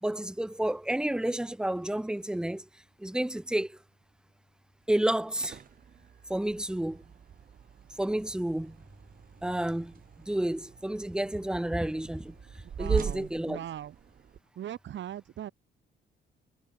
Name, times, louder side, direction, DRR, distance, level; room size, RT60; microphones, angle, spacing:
voice 1, 0.0-2.7 3.0-3.8 4.9-5.6 6.3-7.0 8.0-8.8 9.4-12.4 12.8-13.6, right 1 dB, 5° right, 1.2 m, -30 dB
sound 1, 5.2-14.4, right 8 dB, 45° right, 1.2 m, -40 dB
voice 2, 12.8-14.0 14.6-15.5, right 11 dB, 70° right, 2.7 m, -39 dB
cardioid pair, 90°, 20 cm